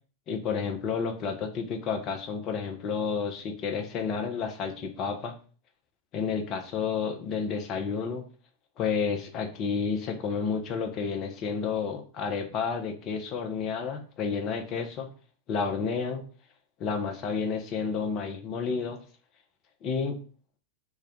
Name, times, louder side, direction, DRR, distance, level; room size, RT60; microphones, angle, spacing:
voice 1, 0.3-5.4 6.1-8.3 8.8-15.1 15.5-16.2 16.8-19.0 19.8-20.2, left 5 dB, 35° left, 5 dB, 0.5 m, -30 dB
2.3 x 2.2 x 3.9 m, 0.39 s
figure-of-eight pair, 90°, 0 cm